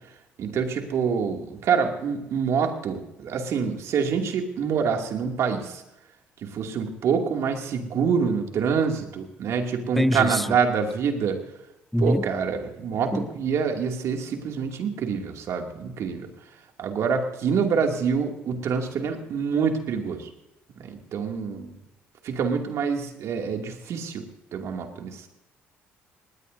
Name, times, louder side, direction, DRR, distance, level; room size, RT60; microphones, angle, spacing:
voice 1, 0.4-5.8 6.4-11.4 12.0-16.3 16.8-20.3 20.8-21.7 22.2-24.2 24.5-25.3, right 6 dB, 65° right, 2.5 m, -26 dB
voice 2, 10.0-10.4 11.9-12.2 13.1-13.3, equal, 5° left, 0.5 m, -23 dB
20.0 x 17.5 x 2.7 m
hypercardioid pair, 60°, 5 cm